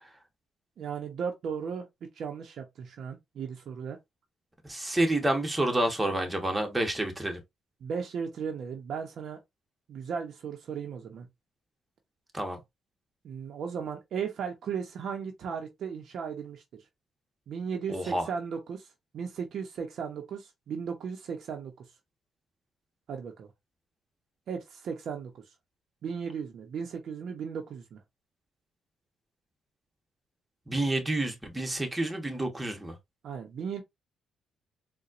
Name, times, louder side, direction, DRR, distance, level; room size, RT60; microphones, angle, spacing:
voice 1, 0.8-4.0 7.8-9.4 9.9-11.3 13.2-16.8 17.5-18.9 19.1-21.8 23.1-23.5 24.5-25.3 26.0-28.0 33.2-33.8, right 6 dB, 65° right, 0.7 m, -36 dB
voice 2, 4.6-7.4 12.3-12.6 17.9-18.2 30.7-32.9, right 1 dB, 10° right, 1.0 m, -29 dB
4.1 x 2.2 x 2.5 m
cardioid pair, 90°, 0 cm